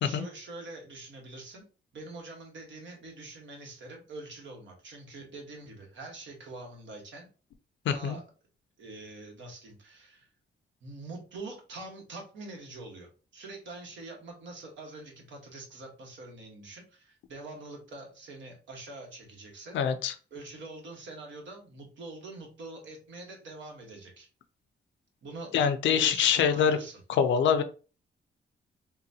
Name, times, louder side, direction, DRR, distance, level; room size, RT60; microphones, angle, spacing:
voice 1, 0.0-1.6 1.9-7.3 7.9-8.2 8.8-10.3 10.8-19.8 20.3-24.3 25.2-25.5 25.8-27.0, right 2 dB, 85° right, 1 dB, 1.1 m, -44 dB
voice 2, 7.9-8.2 19.7-20.1 25.5-26.8 27.1-27.6, left 7 dB, 85° left, 10 dB, 0.5 m, -24 dB
3.8 x 2.2 x 2.7 m, 0.35 s
cardioid pair, 110°, 19 cm